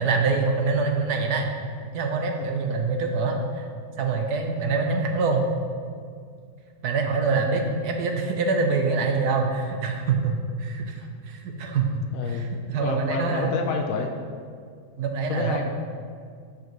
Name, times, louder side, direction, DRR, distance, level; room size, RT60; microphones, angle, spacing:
voice 1, 0.0-1.5 1.9-3.6 4.0-5.6 6.8-13.5 15.0-15.6, right 4 dB, 65° right, 3 dB, 1.1 m, -25 dB
voice 2, 12.1-12.5 12.7-14.1 15.3-15.6, left 4 dB, 75° left, 4 dB, 0.7 m, -28 dB
12.5 x 5.0 x 3.1 m, 2.1 s
omnidirectional pair, 2.1 m